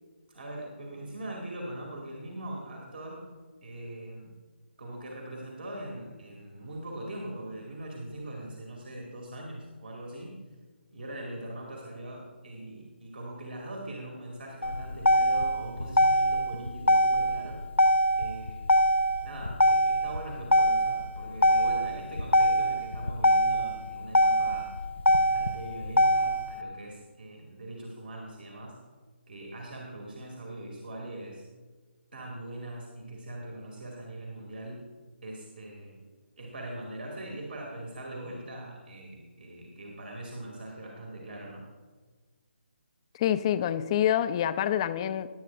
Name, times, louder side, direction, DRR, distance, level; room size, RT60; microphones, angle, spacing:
voice 1, 0.3-3.3 3.6-4.3 4.8-10.4 10.9-17.6 18.2-18.8 19.2-24.8 25.1-28.8 29.3-31.4 32.1-34.9 35.2-36.0 36.4-41.7, right 1 dB, 60° right, 2.4 m, -41 dB
Motor vehicle (road), 14.6-26.6, equal, 90° left, 0.7 m, -24 dB
voice 2, 43.2-45.3, left 10 dB, 25° left, 0.5 m, -26 dB
18.5 x 9.8 x 2.5 m
figure-of-eight pair, 145°, 6 cm